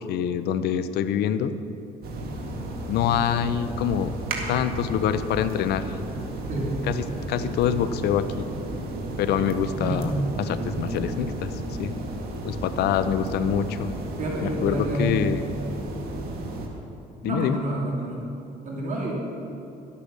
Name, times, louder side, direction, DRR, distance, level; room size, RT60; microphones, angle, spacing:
voice 1, 0.0-1.5 2.9-4.1 4.5-6.0 6.9-8.5 9.2-10.1 10.4-11.5 11.8-11.9 12.4-13.9 14.4-15.4 17.2-17.6, left 9 dB, 75° left, 12 dB, 0.7 m, -25 dB
sound 1, 2.0-16.7, right 1 dB, 65° right, 1.9 m, -33 dB
voice 2, 14.2-15.2 17.2-18.2 18.6-19.1, right 1 dB, 50° right, -3 dB, 2.5 m, -29 dB
12.0 x 8.5 x 6.5 m, 2.8 s
cardioid pair, 110°, 17 cm